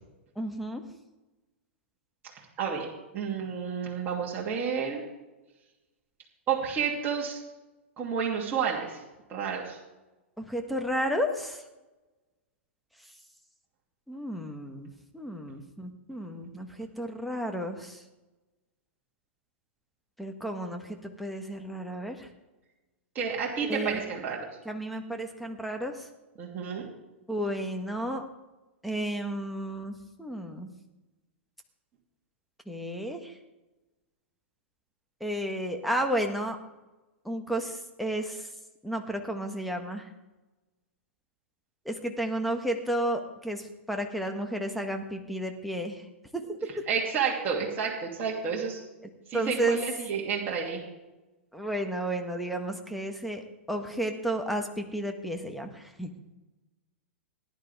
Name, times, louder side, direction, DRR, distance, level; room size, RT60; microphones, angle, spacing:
voice 1, 0.4-0.8 10.4-11.6 14.1-18.0 20.2-22.3 23.6-24.0 24.6-26.1 27.3-28.2 28.8-30.7 32.7-33.3 35.2-36.6 37.2-38.5 38.8-40.1 41.8-46.0 46.3-46.7 49.3-49.8 51.5-56.1, right 1 dB, ahead, 3 dB, 1.6 m, -32 dB
voice 2, 2.6-2.9 3.1-5.0 6.5-7.4 8.0-9.0 9.3-9.8 23.1-24.4 26.4-26.8 46.9-48.8 49.3-50.8, right 6 dB, 30° right, -4 dB, 3.1 m, -30 dB
18.0 x 10.5 x 3.7 m, 1.1 s
hypercardioid pair, 110°, 7 cm